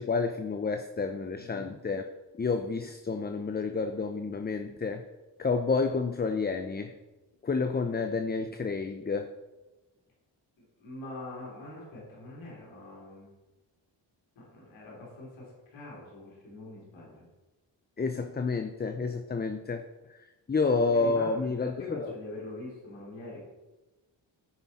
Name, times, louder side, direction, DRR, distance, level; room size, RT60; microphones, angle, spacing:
voice 1, 0.0-2.0 2.4-5.0 5.4-6.9 7.4-9.3 18.0-19.8 20.5-22.1, left 4 dB, 20° left, 8 dB, 0.6 m, -29 dB
voice 2, 1.4-1.7 10.8-13.3 14.3-17.3 20.8-23.4, left 2 dB, 90° left, -5 dB, 3.2 m, -43 dB
13.0 x 5.6 x 4.2 m, 1.1 s
cardioid pair, 60°, 45 cm